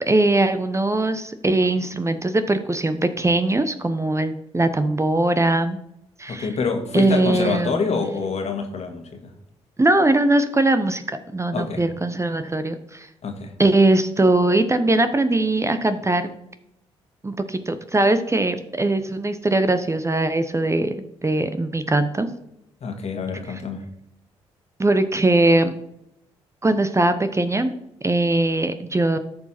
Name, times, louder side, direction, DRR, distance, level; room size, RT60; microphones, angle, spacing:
voice 1, 0.1-5.8 6.2-6.5 6.9-8.0 9.8-11.0 11.3-13.1 13.6-16.3 17.2-20.9 21.2-22.3 24.8-25.7 26.6-27.7 28.0-29.2, right 2 dB, 20° right, 10 dB, 0.8 m, -20 dB
voice 2, 6.3-9.3 11.5-11.8 13.2-13.5 22.8-23.9, left 5 dB, 50° left, 4 dB, 1.8 m, -26 dB
13.5 x 4.6 x 4.3 m, 0.78 s
hypercardioid pair, 45°, 14 cm